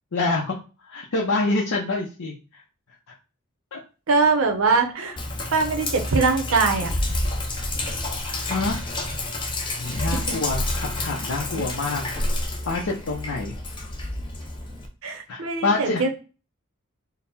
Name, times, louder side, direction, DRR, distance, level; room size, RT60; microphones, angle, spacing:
voice 1, 0.1-0.6 0.8-2.6 3.7-3.8 5.4-5.6 8.2-8.8 9.8-12.0 12.7-13.5 15.3-16.0, left 3 dB, 75° left, -2 dB, 0.6 m, -26 dB
voice 2, 4.1-5.2 5.5-6.9 9.9-10.4 11.5-11.6 15.0-16.1, right 4 dB, 75° right, 5 dB, 0.7 m, -22 dB
Sink (filling or washing), 5.2-14.9, left 1 dB, 20° left, 0.5 m, -29 dB
3.9 x 2.0 x 4.0 m, 0.34 s
head